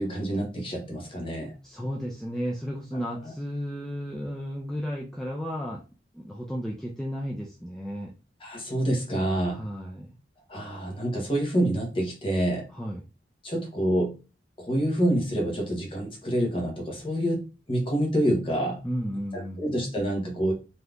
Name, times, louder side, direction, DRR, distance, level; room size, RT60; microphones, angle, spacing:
voice 1, 0.0-1.5 8.4-9.6 10.5-12.7 13.4-14.1 14.6-18.8 19.3-20.5, right 1 dB, 30° left, 1 dB, 0.9 m, -27 dB
voice 2, 1.6-5.8 6.1-8.1 9.5-10.1 12.7-13.0 18.8-19.6, equal, 5° left, -2 dB, 0.3 m, -33 dB
3.3 x 2.8 x 2.4 m, 0.31 s
head